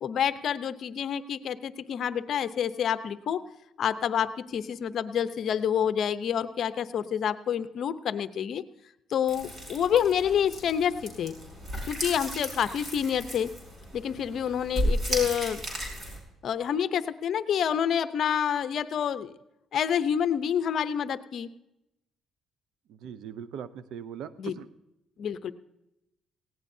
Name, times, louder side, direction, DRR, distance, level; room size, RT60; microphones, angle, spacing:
voice 1, 0.0-3.4 3.8-8.6 9.1-11.4 11.9-13.5 13.9-15.6 16.4-19.3 19.7-21.5 24.4-24.5 25.2-25.5, left 8 dB, 60° left, 12 dB, 0.7 m, -28 dB
sound 1, 9.3-16.2, equal, 30° right, 5.5 m, -34 dB
voice 2, 22.9-24.7, right 8 dB, 75° right, 13 dB, 0.7 m, -40 dB
18.5 x 17.0 x 2.7 m, 0.88 s
cardioid pair, 95°, 0 cm